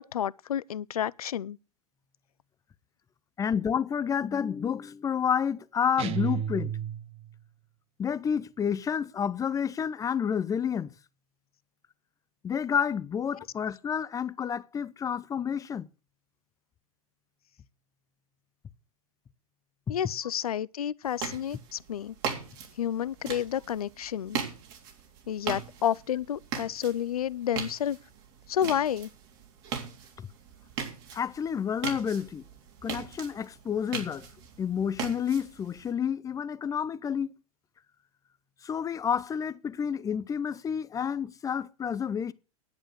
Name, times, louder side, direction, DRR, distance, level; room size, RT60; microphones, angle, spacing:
voice 1, 0.0-1.6 19.9-22.2 22.8-24.4 25.3-28.0 28.5-29.1, left 10 dB, 80° left, 0.5 m, -30 dB
voice 2, 3.4-6.8 8.0-10.9 12.4-15.9 31.1-32.4 32.8-34.3 34.6-37.3 38.6-42.3, left 7 dB, 20° left, 0.6 m, -29 dB
sound 1, 6.0-7.3, right 10 dB, 30° right, 1.0 m, -32 dB
sound 2, 21.0-35.9, right 7 dB, 50° right, 3.6 m, -40 dB
10.5 x 8.7 x 6.6 m
hypercardioid pair, 105°, 19 cm